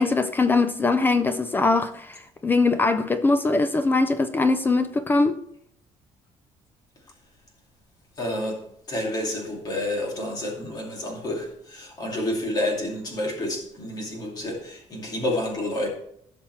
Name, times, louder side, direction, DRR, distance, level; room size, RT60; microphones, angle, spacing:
voice 1, 0.0-5.4, left 3 dB, 15° left, 0.4 m, -22 dB
voice 2, 8.2-8.6 8.9-15.9, left 1 dB, 35° left, 2.5 m, -29 dB
16.0 x 6.0 x 3.2 m
cardioid pair, 175°, 12 cm